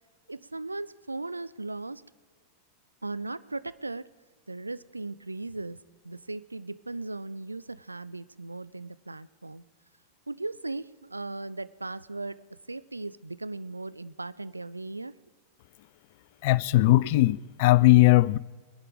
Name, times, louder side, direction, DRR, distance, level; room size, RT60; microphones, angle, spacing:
voice 1, 0.3-2.0 3.0-4.1 4.5-9.6 10.3-15.2 17.0-17.1, right 2 dB, 80° right, 0.4 m, -37 dB
voice 2, 16.4-18.4, left 18 dB, 50° left, 0.4 m, -19 dB
21.0 x 11.0 x 4.8 m
figure-of-eight pair, 90°, 0 cm